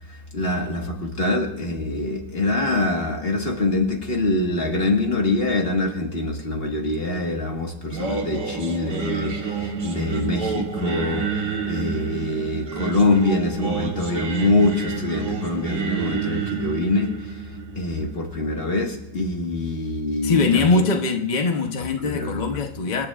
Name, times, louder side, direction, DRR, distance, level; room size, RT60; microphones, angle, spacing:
voice 1, 0.1-20.8 21.8-22.5, left 2 dB, 30° left, 1.6 m, -24 dB
Singing, 7.9-19.0, right 6 dB, 60° right, 1.9 m, -29 dB
voice 2, 20.2-23.1, left 4 dB, 60° left, 0.4 m, -22 dB
26.5 x 10.5 x 2.4 m
omnidirectional pair, 2.1 m